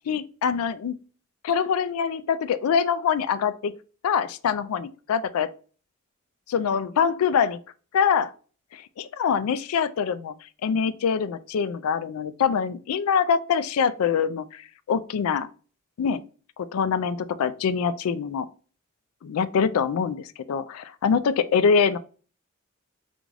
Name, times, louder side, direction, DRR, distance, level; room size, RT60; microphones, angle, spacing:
voice 1, 0.1-1.0 1.4-3.7 4.0-5.5 6.5-7.6 7.9-8.3 8.7-10.3 10.6-14.6 14.9-15.5 16.0-16.2 16.6-18.5 19.2-22.0, left 6 dB, 85° left, 0.3 m, -24 dB
3.5 x 2.5 x 3.2 m
head